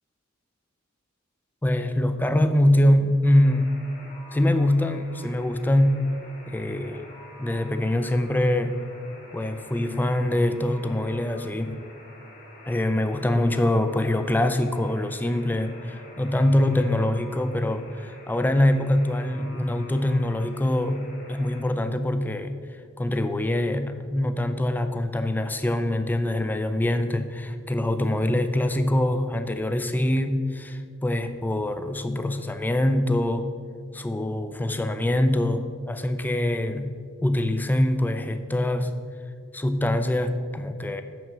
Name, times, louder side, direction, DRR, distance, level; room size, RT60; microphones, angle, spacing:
voice 1, 1.6-3.7 4.3-6.1 6.5-7.0 7.3-8.8 9.3-11.8 12.7-22.6 23.0-33.5 33.9-36.9 37.2-38.9 39.5-41.0, left 1 dB, 10° left, 9 dB, 0.4 m, -24 dB
Alarm, 3.2-21.6, left 1 dB, 45° left, 1.8 m, -48 dB
6.0 x 6.0 x 6.7 m, 2.1 s
head